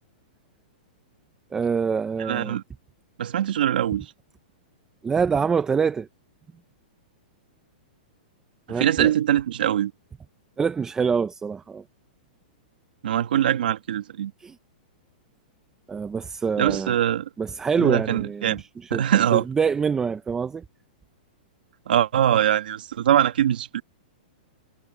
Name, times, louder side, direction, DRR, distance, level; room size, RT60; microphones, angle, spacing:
voice 1, 1.5-2.6 5.0-6.1 8.7-9.1 10.6-11.8 14.4-14.5 15.9-16.9 17.4-18.6 18.9-19.0 19.3-20.6, right 6 dB, 10° right, 0.6 m, -25 dB
voice 2, 2.2-2.6 3.2-4.1 8.7-9.9 13.0-14.3 16.6-17.3 17.8-18.6 18.9-19.5 21.9-23.8, right 10 dB, 75° right, 1.7 m, -22 dB
hypercardioid pair, 155°, 5 cm